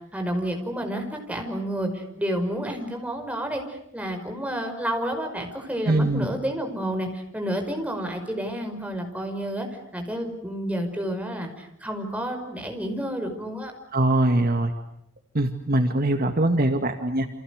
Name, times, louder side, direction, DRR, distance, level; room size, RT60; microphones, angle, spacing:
voice 1, 0.1-9.7 9.9-13.7, equal, 5° right, 4 dB, 5.5 m, -30 dB
voice 2, 5.9-6.3 13.9-14.7 15.3-17.3, right 1 dB, 50° right, 6 dB, 2.1 m, -22 dB
30.0 x 28.0 x 6.6 m, 0.77 s
head